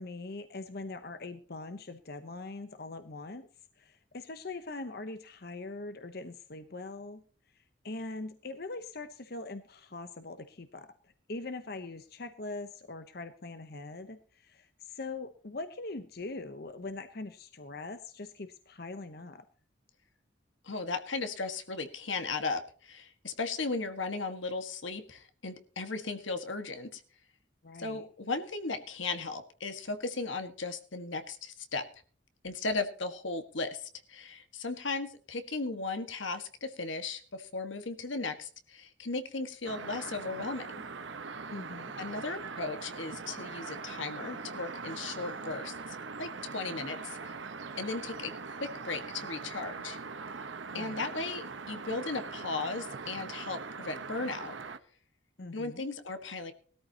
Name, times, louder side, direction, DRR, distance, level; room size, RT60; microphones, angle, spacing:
voice 1, 0.0-3.5 3.8-7.2 7.5-10.9 11.3-19.4 27.6-28.0 41.5-42.0 50.7-51.1 55.4-55.9, left 3 dB, 55° left, 10 dB, 0.9 m, -42 dB
voice 2, 20.6-27.0 27.8-31.9 32.4-40.8 42.0-47.3 47.8-48.3 48.6-50.0 50.7-54.5 55.5-56.5, left 3 dB, 80° left, 8 dB, 1.6 m, -36 dB
sound 1, 39.7-54.8, right 4 dB, 80° right, 1.1 m, -42 dB
19.5 x 13.5 x 2.9 m, 0.43 s
head